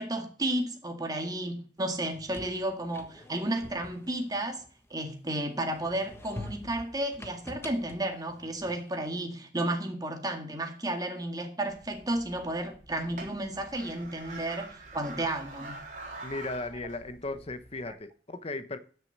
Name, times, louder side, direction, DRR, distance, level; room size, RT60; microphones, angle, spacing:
voice 1, 0.0-4.6 4.9-15.8 17.9-18.0, right 1 dB, 20° right, 2.0 m, -32 dB
sound 1, 1.9-5.2 5.7-9.1, left 1 dB, 15° left, 1.3 m, -46 dB
sound 2, 11.7-17.9, right 3 dB, 45° right, 3.7 m, -46 dB
voice 2, 16.2-18.8, left 2 dB, 35° left, 1.0 m, -36 dB
12.5 x 6.7 x 7.2 m
head